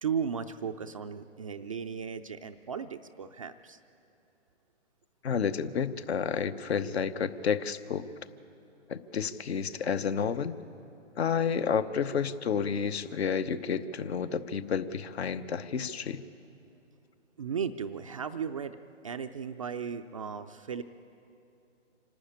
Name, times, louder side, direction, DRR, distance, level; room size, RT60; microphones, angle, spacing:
voice 1, 0.0-3.8 17.4-18.8 19.0-20.8, right 7 dB, 30° right, 7 dB, 0.4 m, -35 dB
voice 2, 5.2-8.1 8.9-10.6 11.2-16.2, left 6 dB, 60° left, 13 dB, 1.0 m, -30 dB
26.0 x 12.5 x 8.7 m, 2.9 s
figure-of-eight pair, 130°, 37 cm